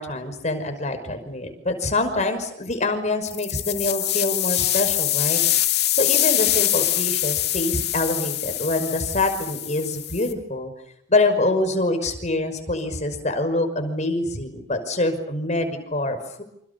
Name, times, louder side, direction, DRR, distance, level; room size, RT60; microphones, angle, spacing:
voice 1, 0.0-10.7 11.1-16.4, left 2 dB, 40° left, 8 dB, 5.6 m, -25 dB
sound 1, 3.2-10.3, left 13 dB, 60° left, 2.5 m, -24 dB
28.0 x 27.5 x 7.1 m, 0.71 s
head